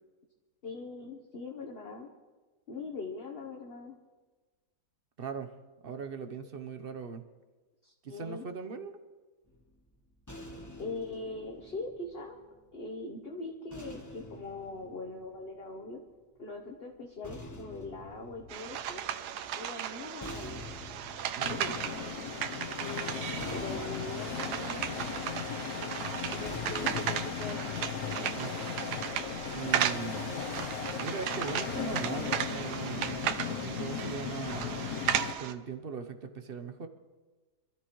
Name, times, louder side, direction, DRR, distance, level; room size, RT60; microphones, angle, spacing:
voice 1, 0.6-2.1 2.7-3.9 7.8-8.4 10.8-12.4 12.7-16.0 16.4-19.0 19.5-20.7 22.6-23.2 23.5-25.1 26.3-27.8, left 3 dB, 40° left, 1 dB, 1.2 m, -41 dB
voice 2, 5.2-5.5 5.8-7.3 8.0-9.0 21.3-21.8 28.3-28.6 29.5-30.3 30.9-34.9 35.4-36.9, right 5 dB, 45° right, 7 dB, 0.9 m, -40 dB
sound 1, 9.5-12.8 13.7-16.0 16.9-28.0, left 1 dB, 10° left, 1.1 m, -48 dB
sound 2, 18.5-35.5, right 10 dB, 80° right, 1.2 m, -36 dB
sound 3, 21.4-35.3, left 7 dB, 65° left, 1.3 m, -37 dB
26.0 x 13.0 x 3.2 m, 1.3 s
omnidirectional pair, 1.8 m